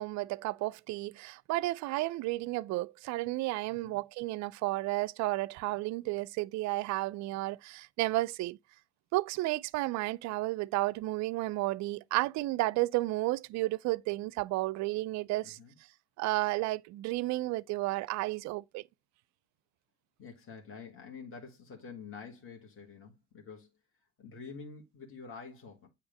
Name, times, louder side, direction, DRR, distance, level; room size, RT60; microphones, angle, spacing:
voice 1, 0.0-8.6 9.1-15.6 16.2-18.8, right 19 dB, 45° right, 0.4 m, -32 dB
voice 2, 3.7-4.0 15.4-15.8 20.2-23.7 24.2-25.9, left 5 dB, 30° left, 2.0 m, -47 dB
8.6 x 2.9 x 5.2 m
hypercardioid pair, 70°, 40 cm